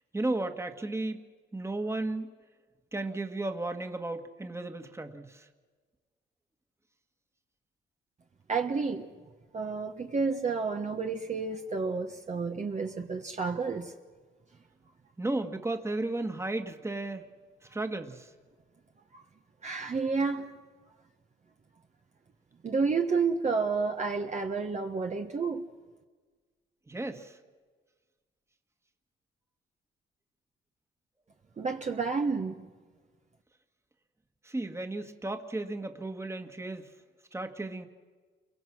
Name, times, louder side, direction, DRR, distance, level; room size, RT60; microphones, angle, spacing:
voice 1, 0.1-1.2 1.5-2.3 2.9-5.5 15.2-17.2 17.7-18.3 26.9-27.4 34.4-36.9 37.3-37.9, right 2 dB, 15° right, 1.9 m, -34 dB
voice 2, 8.5-9.1 9.5-13.9 19.1-19.2 19.6-20.5 22.6-25.6 31.6-32.6, right 4 dB, 35° right, 1.4 m, -30 dB
29.5 x 23.0 x 6.3 m
cardioid pair, 90°, 20 cm